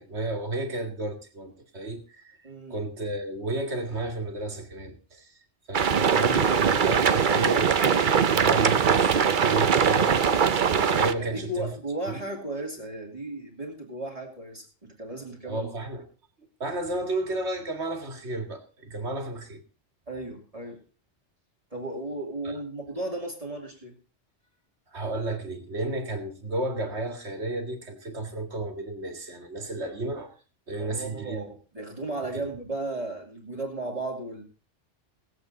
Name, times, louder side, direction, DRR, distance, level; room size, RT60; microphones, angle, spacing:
voice 1, 0.0-2.4 2.7-5.4 5.7-10.1 10.7-11.7 12.1-12.2 15.4-16.1 16.6-19.6 22.4-22.5 24.9-30.3 30.7-31.4 32.3-32.5, right 2 dB, 70° right, 5 dB, 2.3 m, -32 dB
voice 2, 2.4-2.8 11.2-15.7 20.1-20.8 21.7-23.9 30.8-34.4, right 2 dB, 30° right, -1 dB, 2.6 m, -35 dB
sound 1, 5.7-11.1, right 7 dB, 50° right, 0.8 m, -21 dB
18.5 x 8.3 x 3.9 m, 0.35 s
omnidirectional pair, 1.2 m